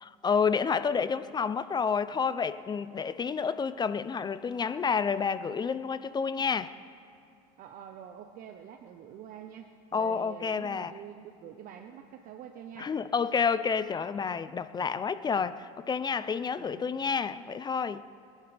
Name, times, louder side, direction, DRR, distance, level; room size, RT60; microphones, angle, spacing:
voice 1, 0.0-6.7 9.9-10.9 12.8-18.0, left 6 dB, 25° left, 13 dB, 0.5 m, -29 dB
voice 2, 7.6-12.9 16.6-16.8, right 9 dB, 50° right, 5 dB, 1.0 m, -46 dB
29.5 x 11.0 x 3.4 m, 2.5 s
supercardioid pair, 110°, 18 cm